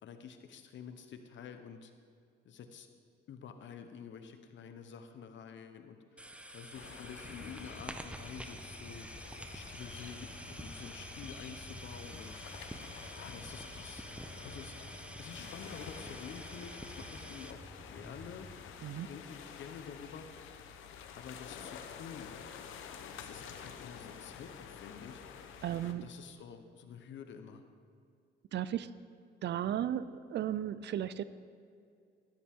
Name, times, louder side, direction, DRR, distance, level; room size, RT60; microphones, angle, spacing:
voice 1, 0.0-1.9 2.4-2.9 3.3-6.2 6.5-9.1 9.5-12.4 13.1-14.1 14.5-14.7 15.2-17.6 17.9-18.5 19.1-20.3 21.2-22.3 23.1-25.2 25.9-27.6, left 7 dB, 70° left, 7 dB, 1.1 m, -49 dB
sound 1, 6.2-17.5, right 1 dB, 5° right, 0.7 m, -48 dB
sound 2, 6.7-25.9, left 7 dB, 85° left, 0.9 m, -50 dB
Motorcycle / Engine starting / Idling, 7.1-18.6, left 1 dB, 10° left, 1.2 m, -53 dB
voice 2, 18.8-19.1 23.5-23.6 25.6-26.2 28.5-29.0 29.4-31.2, right 11 dB, 60° right, 15 dB, 0.5 m, -35 dB
13.0 x 13.0 x 3.7 m, 2.3 s
cardioid pair, 90°, 20 cm